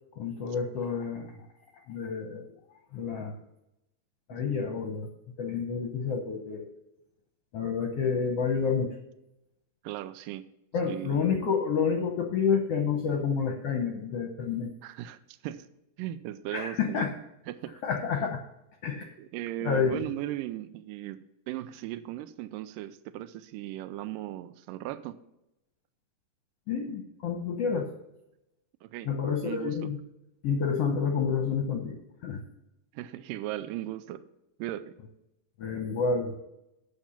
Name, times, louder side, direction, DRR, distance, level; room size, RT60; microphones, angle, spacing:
voice 1, 0.2-1.3 1.9-2.5 2.9-3.3 4.3-5.1 5.4-6.7 7.5-8.9 10.7-14.7 16.5-17.1 17.8-18.4 18.8-19.1 19.6-20.0 26.7-27.9 29.1-30.0 30.4-32.4 35.6-36.4, left 6 dB, 70° left, 3 dB, 1.5 m, -29 dB
voice 2, 9.8-10.4 10.9-11.3 14.8-15.7 16.0-17.1 17.5-17.8 18.2-18.3 19.2-21.2 21.5-25.2 28.8-29.1 29.4-29.8 32.9-34.2 34.6-34.9, right 13 dB, 85° right, 13 dB, 2.2 m, -37 dB
8.8 x 7.3 x 5.7 m, 0.88 s
omnidirectional pair, 3.9 m